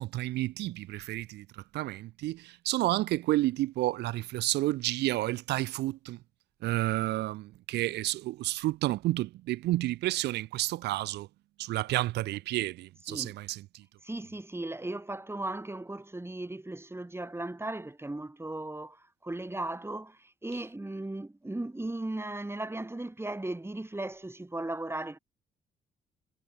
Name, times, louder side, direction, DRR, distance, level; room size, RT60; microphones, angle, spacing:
voice 1, 0.0-1.4 1.7-6.2 6.6-11.3 11.6-13.6, right 17 dB, 70° right, 3.2 m, -30 dB
voice 2, 14.0-25.2, right 2 dB, 15° right, 5.2 m, -37 dB
hypercardioid pair, 50°, 18 cm